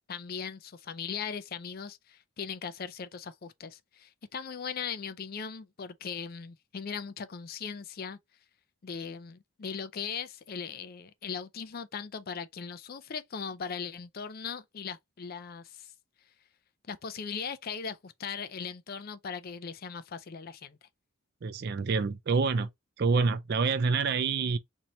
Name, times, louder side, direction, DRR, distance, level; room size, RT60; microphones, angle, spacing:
voice 1, 0.1-8.2 8.8-15.9 16.9-20.8, left 6 dB, 45° left, 0.4 m, -39 dB
voice 2, 21.4-22.7 23.0-24.6, right 4 dB, 45° right, 0.4 m, -27 dB
2.9 x 2.7 x 4.2 m
head